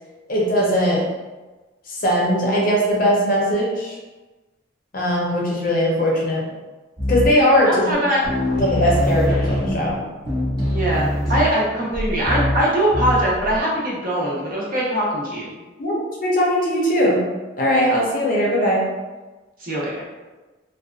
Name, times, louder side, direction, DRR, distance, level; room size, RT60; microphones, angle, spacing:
voice 1, 0.3-1.1 1.9-4.0 4.9-6.4 7.1-7.9 8.6-10.0 15.8-17.2 17.6-18.8, equal, 50° left, -3 dB, 0.6 m, -19 dB
sound 1, 7.0-7.6 7.9-8.0 8.2-13.6, left 1 dB, 20° right, 0.9 m, -23 dB
voice 2, 7.6-8.2 10.7-15.5 19.6-20.0, right 1 dB, 50° right, -6 dB, 0.7 m, -22 dB
2.6 x 2.3 x 2.3 m, 1.2 s
head